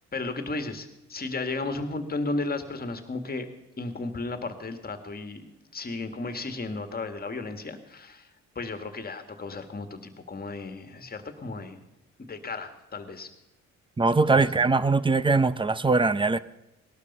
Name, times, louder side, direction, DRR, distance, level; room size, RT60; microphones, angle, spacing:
voice 1, 0.1-3.5 3.8-5.5 5.7-8.3 8.6-11.8 12.3-13.3 14.3-14.6, left 3 dB, 30° left, 7 dB, 1.9 m, -34 dB
voice 2, 14.0-16.4, right 3 dB, 15° right, 16 dB, 0.6 m, -22 dB
19.0 x 12.0 x 5.5 m, 0.94 s
cardioid pair, 90°, 30 cm